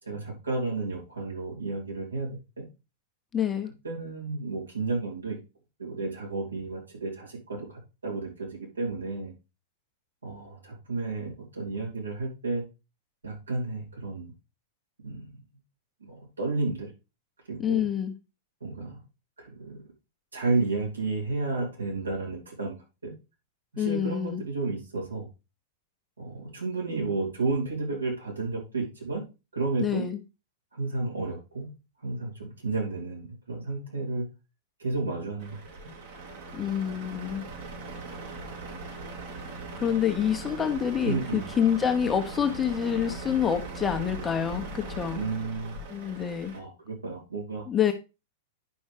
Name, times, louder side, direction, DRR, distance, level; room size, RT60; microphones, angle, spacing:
voice 1, 0.0-2.6 3.8-5.4 5.8-9.3 10.2-12.6 13.2-14.3 15.0-15.4 16.0-16.9 17.5-17.9 18.6-19.0 19.4-19.8 20.3-23.1 23.7-25.3 26.2-29.2 29.5-30.0 30.7-31.7 32.0-34.2 34.8-35.6 41.0-41.4 45.1-45.8 46.5-47.6, right 3 dB, 75° right, -2 dB, 3.1 m, -32 dB
voice 2, 3.3-3.7 17.6-18.1 23.8-24.4 29.8-30.2 36.5-37.4 39.8-45.2 45.9-46.5 47.7-47.9, left 8 dB, 15° left, 5 dB, 1.0 m, -27 dB
Truck, 35.4-46.6, right 2 dB, 50° right, 1.9 m, -40 dB
10.5 x 5.3 x 3.4 m, 0.28 s
figure-of-eight pair, 95°, 0 cm